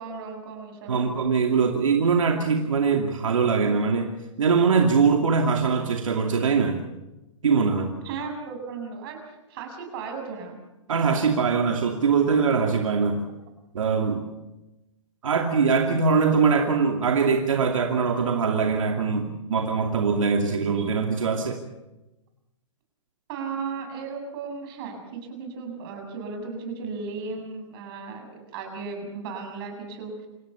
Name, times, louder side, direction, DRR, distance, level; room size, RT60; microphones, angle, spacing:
voice 1, 0.0-1.1 8.0-9.2 9.5-10.6 23.3-30.1, right 5 dB, 45° right, 4 dB, 7.5 m, -35 dB
voice 2, 0.9-4.1 4.4-6.8 7.4-7.9 10.9-13.2 13.7-14.2 15.2-21.6, right 5 dB, 85° right, 3 dB, 2.7 m, -22 dB
27.5 x 17.0 x 7.0 m, 0.99 s
hypercardioid pair, 140°, 16 cm